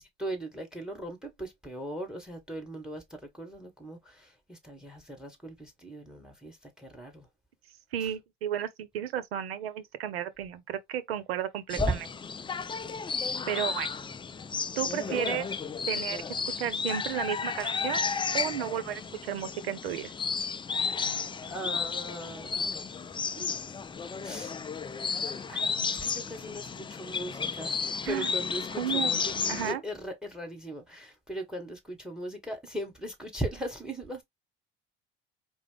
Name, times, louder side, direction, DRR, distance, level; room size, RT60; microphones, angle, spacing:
voice 1, 0.2-3.0 3.3-7.3 8.0-8.1 11.8-11.9 15.0-15.2 21.5-22.9 23.4-23.6 24.2-24.5 25.5-27.7 28.0-29.3 29.6-34.2, right 1 dB, ahead, 1.4 m, -38 dB
voice 2, 7.9-12.1 13.5-13.9 14.8-15.4 15.9-16.2 16.6-18.0 18.3-20.1 28.0-28.3 28.8-29.1 29.5-29.8, right 10 dB, 85° right, 0.6 m, -33 dB
sound 1, 11.7-29.7, left 5 dB, 15° left, 0.4 m, -33 dB
4.8 x 2.1 x 3.3 m
hypercardioid pair, 65°, 29 cm